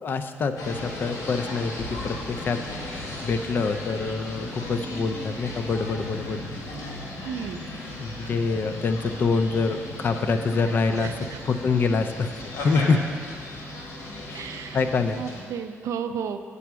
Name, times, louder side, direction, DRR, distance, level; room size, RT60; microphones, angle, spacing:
voice 1, 0.0-6.5 8.0-11.1 11.5-12.3 12.6-13.0 14.3-15.2, left 4 dB, 40° left, 8 dB, 0.4 m, -26 dB
sound 1, 0.6-15.4, left 1 dB, 75° left, 1.5 m, -36 dB
voice 2, 7.2-7.6 11.0-11.4 14.3-14.8 15.2-16.4, right 7 dB, 70° right, 9 dB, 0.4 m, -33 dB
8.3 x 4.5 x 6.1 m, 2.2 s
cardioid pair, 160°, 5 cm